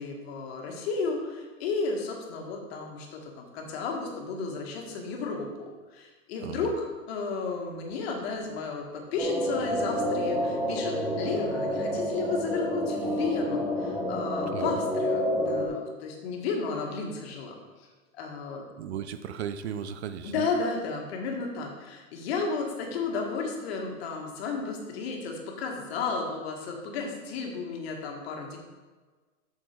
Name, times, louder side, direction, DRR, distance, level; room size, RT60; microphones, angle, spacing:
voice 1, 0.0-17.9 18.1-18.6 20.2-28.6, left 4 dB, 45° left, 1 dB, 1.9 m, -33 dB
sound 1, 9.2-15.7, equal, ahead, 0.6 m, -29 dB
voice 2, 18.7-20.4, right 9 dB, 50° right, 10 dB, 0.6 m, -36 dB
8.4 x 6.5 x 4.6 m, 1.3 s
hypercardioid pair, 155°, 42 cm